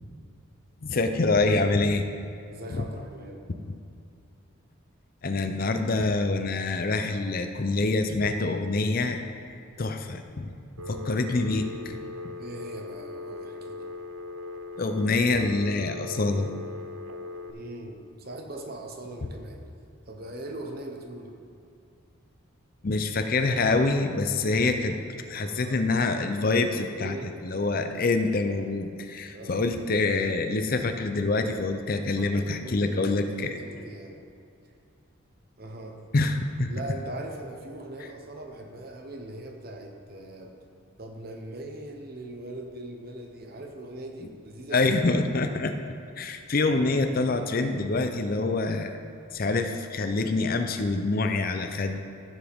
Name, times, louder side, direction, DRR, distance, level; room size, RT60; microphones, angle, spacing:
voice 1, 0.8-2.1 2.7-2.8 5.2-10.5 10.9-12.0 14.8-16.5 22.8-25.0 25.3-27.2 27.4-33.5 36.1-36.7 44.7-45.7 46.2-49.0 49.3-52.0, left 3 dB, 45° left, 7 dB, 0.5 m, -26 dB
voice 2, 2.5-3.5 12.4-13.9 17.5-19.6 20.1-21.4 25.4-25.9 27.0-27.4 27.8-28.1 29.3-29.6 32.1-34.2 35.6-36.0 36.7-40.6 41.0-44.9, right 1 dB, 45° right, 3 dB, 0.9 m, -40 dB
Telephone, 10.8-17.5, left 3 dB, 90° right, 0.6 m, -39 dB
13.5 x 7.3 x 3.6 m, 2.5 s
head